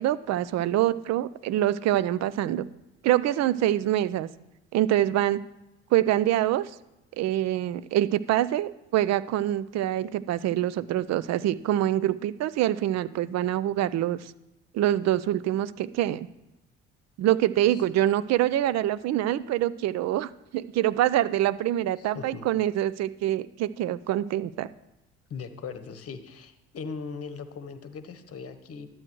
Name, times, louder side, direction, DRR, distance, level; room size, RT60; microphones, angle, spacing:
voice 1, 0.0-2.7 3.0-4.3 4.7-5.4 5.9-6.7 7.2-14.3 14.7-16.3 17.2-24.7, right 13 dB, 50° right, 17 dB, 0.5 m, -25 dB
voice 2, 22.0-22.5 25.3-28.9, left 5 dB, 40° left, 9 dB, 1.1 m, -39 dB
11.5 x 7.8 x 3.1 m, 0.95 s
hypercardioid pair, 55°, 34 cm